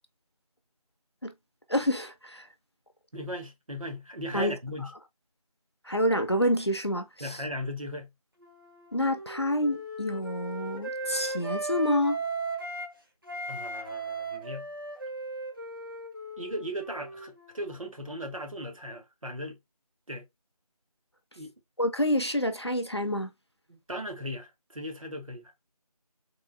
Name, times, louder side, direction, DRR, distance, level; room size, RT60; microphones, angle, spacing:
voice 1, 1.7-2.5 4.3-4.5 5.9-7.4 8.9-12.2 21.8-23.3, left 1 dB, 45° left, 0.6 m, -28 dB
voice 2, 3.1-4.9 7.2-8.1 13.5-14.7 16.4-19.6 20.1-20.2 21.4-21.5 23.7-25.4, equal, 60° right, 1.3 m, -37 dB
Wind instrument woodwind instrument, 8.4-12.9 13.2-17.7, right 2 dB, 35° right, 0.9 m, -37 dB
3.7 x 2.6 x 3.5 m
figure-of-eight pair, 175°, 20 cm